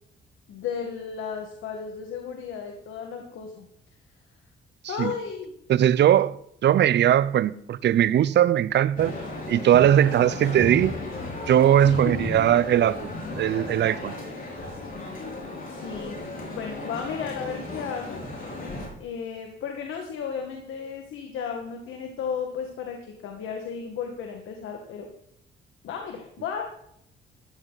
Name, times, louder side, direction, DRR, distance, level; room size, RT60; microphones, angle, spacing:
voice 1, 0.5-3.7 4.9-5.5 11.8-12.5 15.7-16.2 16.5-18.3 19.0-25.1 25.8-26.6, left 6 dB, 80° left, 1.8 m, -34 dB
voice 2, 5.7-6.4 6.6-9.1 9.5-10.9 11.5-13.1 13.4-14.1, right 11 dB, 60° right, 0.6 m, -20 dB
Male speech man speaking, 9.0-18.9, left 2 dB, 45° left, 5.9 m, -35 dB
15.0 x 11.0 x 4.1 m
cardioid pair, 90°, 20 cm